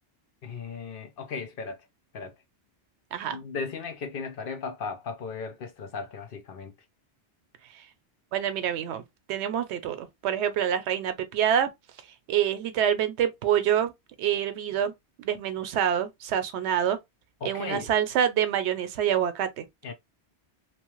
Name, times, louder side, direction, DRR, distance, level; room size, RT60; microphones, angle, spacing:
voice 1, 0.4-1.8 2.1-2.3 3.3-6.7 17.4-17.9 19.8-19.9, left 5 dB, 60° left, 0.8 m, -36 dB
voice 2, 8.3-9.0 9.3-11.7 12.3-13.9 14.2-14.9 15.2-17.0 17.4-19.7, right 9 dB, 85° right, 0.9 m, -26 dB
3.0 x 2.0 x 3.0 m
omnidirectional pair, 1.1 m